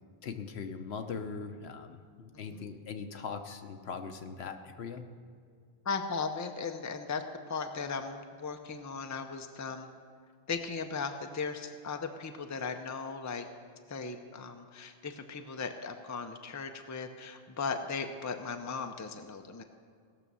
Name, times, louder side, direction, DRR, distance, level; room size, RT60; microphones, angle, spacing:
voice 1, 0.2-5.0, left 5 dB, 70° left, 7 dB, 1.0 m, -40 dB
voice 2, 2.3-2.7 5.8-9.9 10.5-13.4 13.9-19.6, left 5 dB, 20° left, 6 dB, 0.5 m, -37 dB
17.5 x 6.2 x 6.9 m, 2.1 s
omnidirectional pair, 1.1 m